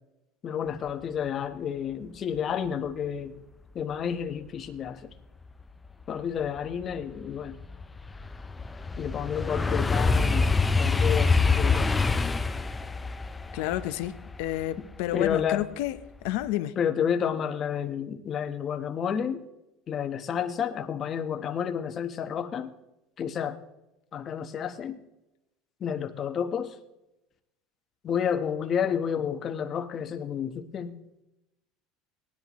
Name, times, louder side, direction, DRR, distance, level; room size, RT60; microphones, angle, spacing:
voice 1, 0.4-3.4 3.7-5.0 6.1-7.6 9.0-12.0 15.1-15.6 16.8-19.4 19.9-22.7 23.2-23.6 24.1-25.0 25.8-26.8 28.0-30.9, left 8 dB, 35° left, 1.1 m, -30 dB
sound 1, 6.0-6.1 6.6-15.6 16.0-16.4, left 4 dB, 10° left, 0.5 m, -26 dB
voice 2, 13.5-16.0 16.2-16.8, left 14 dB, 75° left, 0.8 m, -30 dB
18.5 x 10.5 x 3.1 m
cardioid pair, 140°, 0 cm